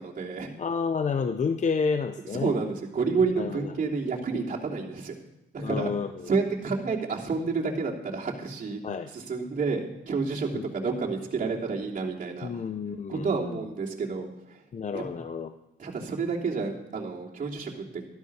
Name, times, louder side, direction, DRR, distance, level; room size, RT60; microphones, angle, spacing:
voice 1, 0.0-0.5 2.3-5.2 5.5-5.9 6.3-8.8 9.1-12.7 13.1-14.6 14.9-15.0 15.8-18.1, right 4 dB, 40° right, -3 dB, 3.1 m, -30 dB
voice 2, 0.6-2.5 3.4-3.9 5.6-6.1 8.8-9.1 10.5-10.7 12.4-13.6 14.7-15.5, left 5 dB, 35° left, 9 dB, 0.7 m, -30 dB
13.0 x 12.5 x 4.9 m, 0.91 s
cardioid pair, 90°, 20 cm